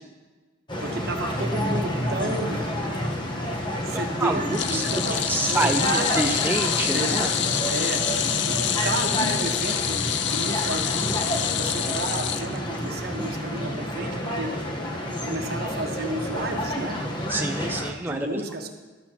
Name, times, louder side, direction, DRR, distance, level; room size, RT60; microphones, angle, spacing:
sound 1, 0.7-17.9, equal, 25° left, 1.2 m, -29 dB
voice 1, 0.8-2.6 3.9-6.3 6.9-7.4 7.7-8.0 8.4-14.5 15.2-17.0 18.1-18.7, right 2 dB, 55° right, 4 dB, 1.2 m, -32 dB
voice 2, 3.9-4.8 5.1-7.3 17.3-18.4, right 2 dB, 10° right, 2 dB, 0.4 m, -27 dB
sound 2, 4.5-13.0 13.4-13.6 14.8-14.9, left 10 dB, 65° left, 0.5 m, -27 dB
13.5 x 12.0 x 3.0 m, 1.3 s
head